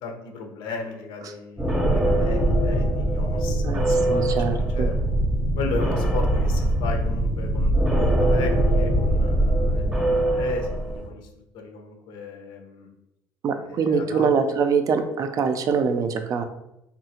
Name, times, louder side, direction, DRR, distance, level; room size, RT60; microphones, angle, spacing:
voice 1, 0.0-5.0 5.6-11.3 11.5-12.9 13.6-14.3, left 4 dB, 75° left, 3 dB, 0.7 m, -35 dB
sound 1, 1.6-11.1, right 1 dB, 10° right, 0.7 m, -22 dB
voice 2, 3.6-4.9 13.4-16.4, right 5 dB, 45° right, 8 dB, 0.3 m, -24 dB
3.5 x 2.4 x 2.8 m, 0.86 s
cardioid pair, 115°, 8 cm